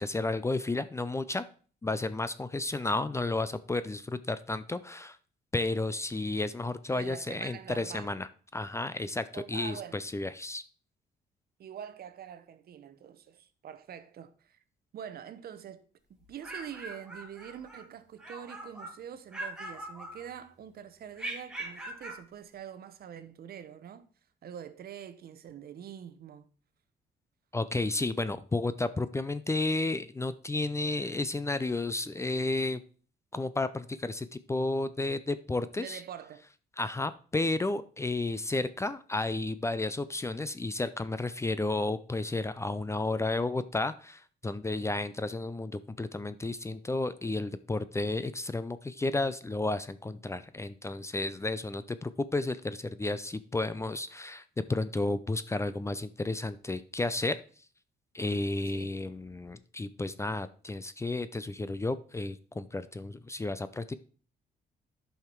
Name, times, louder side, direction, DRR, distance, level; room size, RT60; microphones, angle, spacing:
voice 1, 0.0-1.4 1.8-5.2 5.5-8.3 8.5-10.6 27.5-32.8 33.3-36.0 36.8-54.4 54.7-57.4 58.1-63.9, left 2 dB, 15° left, 0.5 m, -32 dB
voice 2, 6.9-8.1 9.3-10.0 11.6-14.6 14.9-15.9 16.3-24.1 24.4-26.5 35.7-36.4 58.7-59.0, right 9 dB, 60° right, 0.9 m, -45 dB
sound 1, 16.2-17.9 18.2-19.0 19.3-20.6 21.2-22.3, right 1 dB, 5° right, 2.2 m, -41 dB
10.5 x 5.7 x 4.5 m
cardioid pair, 110°, 18 cm